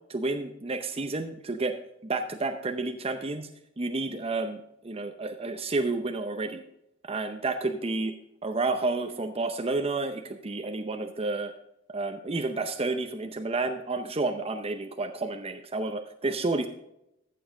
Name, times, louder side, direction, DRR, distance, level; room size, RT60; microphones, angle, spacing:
voice 1, 0.1-1.8 2.0-3.5 3.8-6.6 7.0-8.1 8.4-11.5 11.9-16.7, right 3 dB, 30° right, 6 dB, 0.7 m, -30 dB
14.5 x 7.1 x 3.8 m, 0.81 s
head